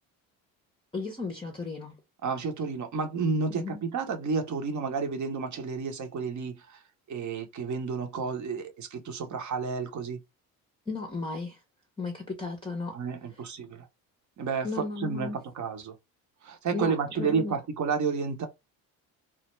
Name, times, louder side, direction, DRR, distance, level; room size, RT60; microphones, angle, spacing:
voice 1, 0.9-2.0 3.5-3.8 10.9-11.6 12.0-13.0 14.6-15.4 16.7-17.6, left 3 dB, 10° left, 0.6 m, -35 dB
voice 2, 2.2-6.8 7.1-10.2 12.9-13.9 14.4-15.9 16.4-18.5, right 5 dB, 45° right, 0.8 m, -31 dB
2.2 x 2.0 x 3.0 m
hypercardioid pair, 65°, 43 cm